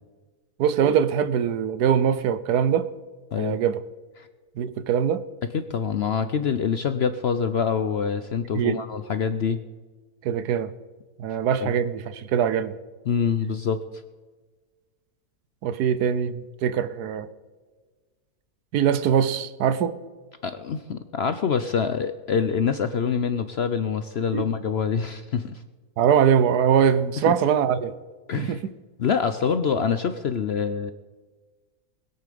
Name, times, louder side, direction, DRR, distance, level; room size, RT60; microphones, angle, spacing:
voice 1, 0.6-2.9 3.4-3.8 4.6-5.2 8.5-8.8 10.2-10.7 11.2-12.7 15.6-17.3 18.7-20.0 24.3-24.5 26.0-27.9 28.4-28.7, right 8 dB, 80° right, 13 dB, 1.3 m, -22 dB
voice 2, 5.5-9.6 11.6-11.7 13.1-13.8 20.4-25.6 27.3-27.4 28.3-28.6 29.0-30.9, left 6 dB, 60° left, 10 dB, 0.7 m, -25 dB
21.0 x 8.4 x 5.1 m, 1.4 s
omnidirectional pair, 1.7 m